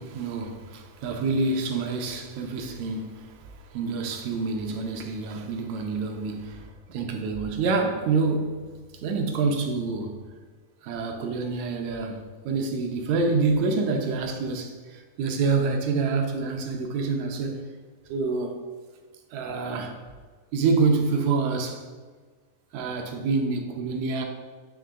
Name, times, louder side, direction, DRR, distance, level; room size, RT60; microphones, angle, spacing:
voice 1, 0.0-8.7 8.9-10.2 10.8-17.7 18.1-18.6 19.3-20.0 20.5-21.9 22.7-24.2, right 4 dB, 80° right, 4 dB, 1.9 m, -27 dB
8.4 x 3.2 x 3.6 m, 1.4 s
omnidirectional pair, 3.5 m